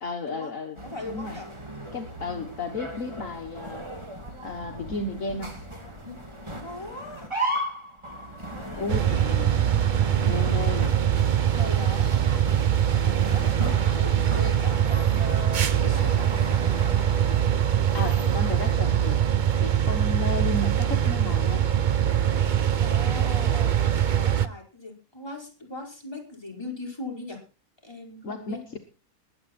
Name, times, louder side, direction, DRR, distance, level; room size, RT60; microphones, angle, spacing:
voice 1, 0.0-0.8 1.1-1.4 1.9-3.9 4.4-5.5 8.8-9.2 10.2-10.9 17.9-19.2 19.6-21.6 28.2-28.6, left 3 dB, 60° left, 4 dB, 1.7 m, -33 dB
voice 2, 0.8-1.5 6.6-7.3 8.5-9.6 10.5-10.8 11.5-12.4 12.8-16.3 22.8-23.7 24.1-27.4 27.8-28.6, left 2 dB, 15° left, 1 dB, 4.6 m, -39 dB
sound 1, 0.8-18.7, right 1 dB, 20° right, 2.5 m, -37 dB
sound 2, 8.9-24.5, right 10 dB, 45° right, 0.6 m, -23 dB
21.0 x 8.6 x 4.3 m, 0.33 s
omnidirectional pair, 1.6 m